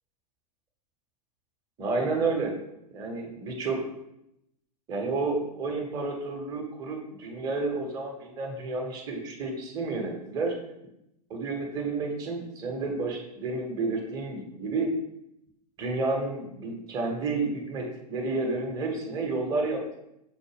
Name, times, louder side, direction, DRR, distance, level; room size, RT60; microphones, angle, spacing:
voice 1, 1.8-2.5 2.9-3.8 4.9-10.5 11.3-14.9 15.8-20.0, right 3 dB, 20° right, 1 dB, 0.6 m, -30 dB
5.4 x 2.1 x 3.2 m, 0.83 s
figure-of-eight pair, 100°, 20 cm